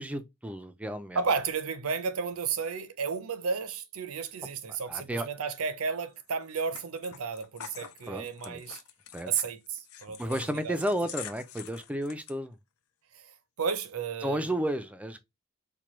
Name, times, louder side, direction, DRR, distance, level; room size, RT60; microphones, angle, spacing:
voice 1, 0.0-1.2 4.9-5.3 8.1-8.6 9.1-9.3 10.2-12.6 14.2-15.2, right 1 dB, 5° right, 0.3 m, -32 dB
voice 2, 1.1-8.8 9.2-10.8 13.1-13.3 13.6-14.5, right 5 dB, 85° right, 0.6 m, -33 dB
sound 1, 6.2-12.3, left 10 dB, 85° left, 0.5 m, -46 dB
4.5 x 2.2 x 3.0 m
head